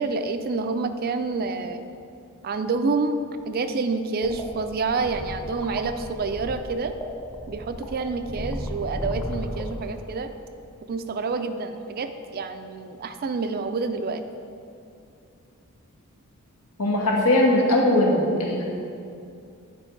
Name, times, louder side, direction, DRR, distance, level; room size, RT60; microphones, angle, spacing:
voice 1, 0.0-1.8 2.4-3.2 3.4-6.9 7.5-10.3 10.9-14.2, right 4 dB, 45° right, 9 dB, 0.4 m, -28 dB
sound 1, 4.2-10.3, equal, 10° left, 0.7 m, -35 dB
voice 2, 16.8-18.6, left 1 dB, 75° left, -2 dB, 1.4 m, -20 dB
8.9 x 5.2 x 4.5 m, 2.5 s
head